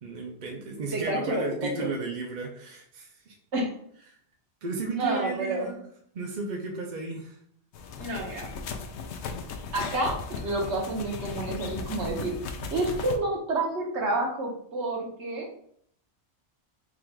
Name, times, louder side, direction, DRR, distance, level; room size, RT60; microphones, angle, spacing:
voice 1, 0.0-3.4 4.1-4.2 4.6-5.8 6.1-7.4, right 3 dB, 45° right, 0 dB, 0.7 m, -34 dB
voice 2, 0.9-1.9 3.5-3.7 5.0-5.7 8.0-8.5 9.7-12.3 12.7-15.5, right 2 dB, 65° right, -1 dB, 1.4 m, -29 dB
sound 1, 7.7-13.2, left 4 dB, 70° left, 0.9 m, -37 dB
3.8 x 2.5 x 4.5 m, 0.66 s
omnidirectional pair, 1.2 m